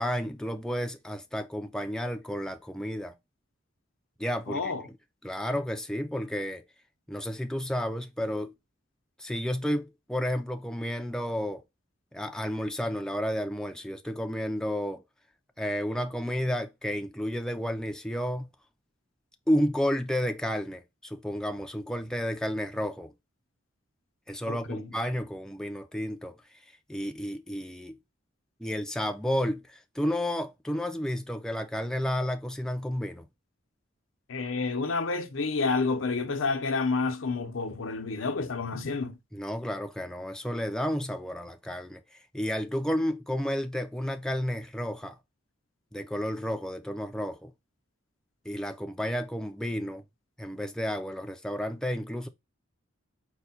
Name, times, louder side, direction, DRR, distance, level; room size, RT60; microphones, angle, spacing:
voice 1, 0.0-3.1 4.2-4.7 5.2-6.6 7.1-8.5 9.2-11.6 12.1-15.0 15.6-18.5 19.5-23.1 24.3-26.3 26.9-28.0 28.6-33.2 39.3-42.0 42.3-45.2 45.9-47.5 48.5-50.0 50.4-52.3, equal, 5° left, 0.3 m, -31 dB
voice 2, 4.5-4.8 24.5-24.9 34.3-39.1, left 4 dB, 85° left, 0.7 m, -29 dB
4.6 x 2.2 x 4.1 m
head